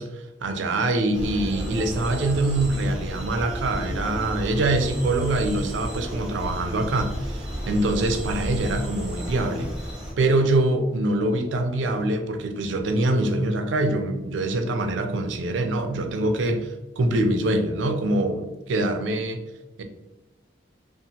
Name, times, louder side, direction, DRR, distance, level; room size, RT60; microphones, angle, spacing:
voice 1, 0.0-9.7 10.2-19.4 19.8-19.9, right 2 dB, 85° right, 6 dB, 0.4 m, -24 dB
sound 1, 1.1-10.1, equal, 5° right, 0.7 m, -32 dB
2.8 x 2.4 x 2.7 m, 1.1 s
head